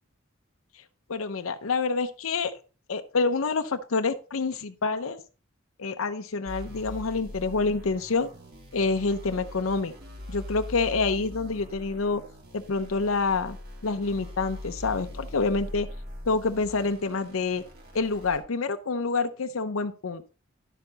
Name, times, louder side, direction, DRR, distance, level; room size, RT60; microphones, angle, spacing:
voice 1, 1.1-2.5 2.9-5.2 5.8-8.3 8.7-9.9 10.3-12.2 12.5-13.6 13.8-15.9 16.3-17.6 17.9-20.3, left 4 dB, 90° left, 8 dB, 0.7 m, -27 dB
sound 1, 6.5-18.4, left 1 dB, 50° right, 3.2 m, -42 dB
11.0 x 6.8 x 4.0 m, 0.35 s
head